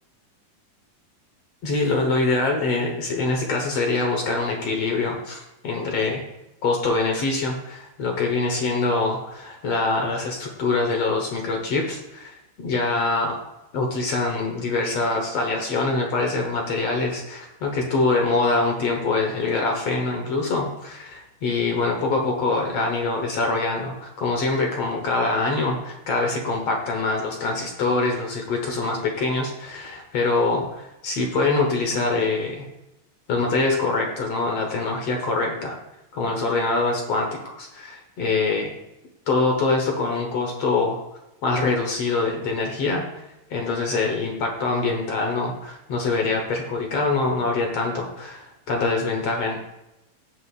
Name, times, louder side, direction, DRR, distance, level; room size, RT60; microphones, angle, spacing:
voice 1, 1.6-6.2 6.6-13.4 13.7-32.7 33.3-35.8 36.1-37.3 37.6-38.7 39.3-41.0 41.4-43.0 43.5-49.6, left 3 dB, 60° left, 2 dB, 1.8 m, -24 dB
16.5 x 7.0 x 2.5 m, 0.91 s
omnidirectional pair, 4.1 m